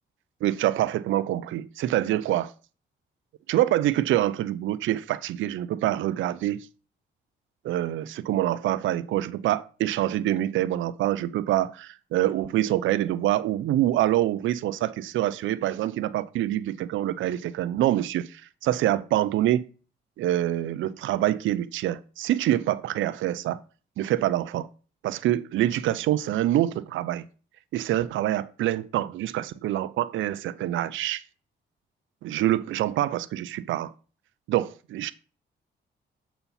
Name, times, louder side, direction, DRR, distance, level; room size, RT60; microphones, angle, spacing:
voice 1, 0.4-2.5 3.5-6.7 7.6-19.7 20.2-23.6 24.0-24.7 25.0-27.3 27.7-31.2 32.2-33.9 34.5-35.1, right 13 dB, 85° right, 0.4 m, -26 dB
6.9 x 4.3 x 5.4 m
cardioid pair, 70°, 20 cm